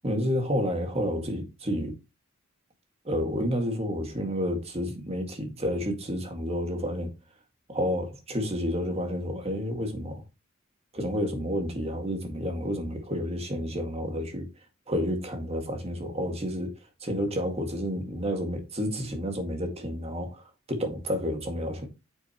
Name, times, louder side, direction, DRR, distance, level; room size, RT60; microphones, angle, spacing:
voice 1, 0.0-1.9 3.1-7.1 7.7-10.2 10.9-14.5 14.9-16.7 17.0-20.4 20.7-21.9, equal, 30° right, 2.0 m, -30 dB
9.1 x 6.8 x 3.0 m
head